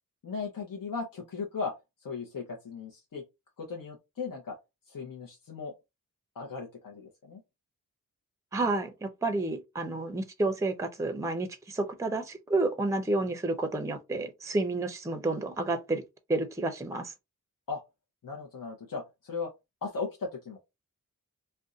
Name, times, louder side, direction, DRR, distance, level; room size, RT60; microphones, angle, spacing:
voice 1, 0.2-1.7 2.0-3.2 3.6-4.6 4.9-5.7 6.3-7.4 17.7-17.8 18.2-19.5 19.8-20.6, left 4 dB, 75° left, 0.8 m, -37 dB
voice 2, 8.5-16.0 16.3-17.1, right 2 dB, 10° right, 0.5 m, -30 dB
2.5 x 2.2 x 3.7 m
wide cardioid pair, 100°, 34 cm